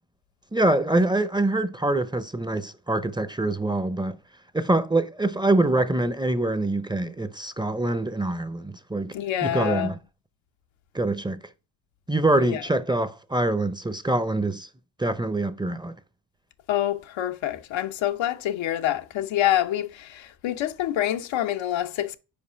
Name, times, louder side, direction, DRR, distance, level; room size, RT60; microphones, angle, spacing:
voice 1, 0.5-4.2 4.5-9.2 9.4-10.0 10.9-11.4 12.1-14.7 15.0-15.9, right 2 dB, 10° right, 0.5 m, -24 dB
voice 2, 9.1-9.9 12.4-12.6 16.7-22.2, left 12 dB, 90° left, 0.8 m, -26 dB
5.3 x 4.9 x 5.5 m
cardioid pair, 75°, 45 cm